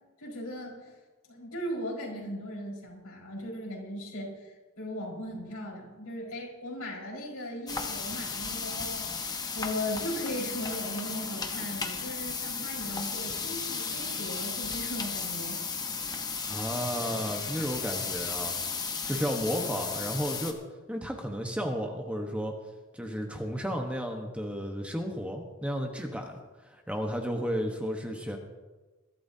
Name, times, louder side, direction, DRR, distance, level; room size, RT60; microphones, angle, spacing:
voice 1, 0.2-0.9 1.3-15.6, left 1 dB, 80° left, -2 dB, 5.0 m, -38 dB
sound 1, 7.7-20.5, left 5 dB, 15° left, 1.0 m, -34 dB
voice 2, 16.4-18.5 19.0-20.6 20.9-22.6 22.9-28.4, equal, 5° right, 2 dB, 1.1 m, -33 dB
21.5 x 12.5 x 2.8 m, 1.2 s
head